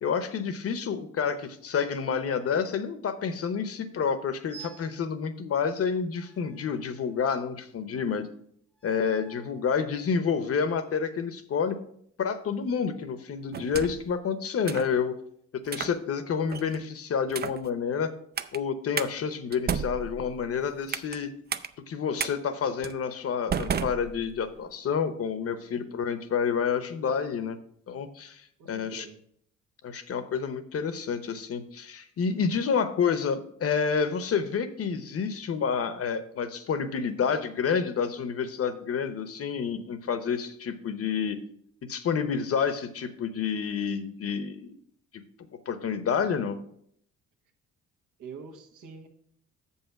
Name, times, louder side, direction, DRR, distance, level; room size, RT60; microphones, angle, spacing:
voice 1, 0.0-8.3 8.8-11.8 12.2-15.2 15.6-18.1 18.5-21.3 21.9-27.6 27.9-28.4 28.7-29.1 29.8-41.4 41.9-44.8 45.1-45.2 45.7-46.6, left 6 dB, 50° left, 11 dB, 0.9 m, -29 dB
sound 1, 4.5-5.0 6.1-7.4 8.7-9.6, right 9 dB, 5° left, 0.9 m, -50 dB
sound 2, 13.5-14.1 14.7-14.9 15.7-16.0 16.5-16.8 17.3-17.7 18.4-18.6 19.0-19.1 19.5-21.2 21.5-21.7 22.2-22.3 22.8-23.0 23.5-24.6, right 7 dB, 35° right, 0.5 m, -33 dB
voice 2, 28.6-29.2 48.2-49.1, right 5 dB, 80° right, 3 dB, 1.4 m, -45 dB
6.9 x 5.7 x 5.8 m, 0.67 s
cardioid pair, 90°, 30 cm